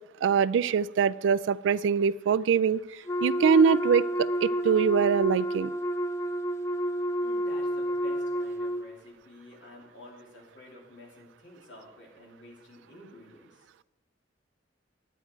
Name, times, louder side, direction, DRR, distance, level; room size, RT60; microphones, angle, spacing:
voice 1, 0.2-2.8 3.2-5.7, right 6 dB, 80° right, 17 dB, 0.3 m, -23 dB
Wind instrument woodwind instrument, 3.1-8.8, equal, 15° left, 0.5 m, -30 dB
voice 2, 7.2-13.7, left 1 dB, 80° left, -2 dB, 3.0 m, -51 dB
11.0 x 9.2 x 4.5 m, 1.1 s
head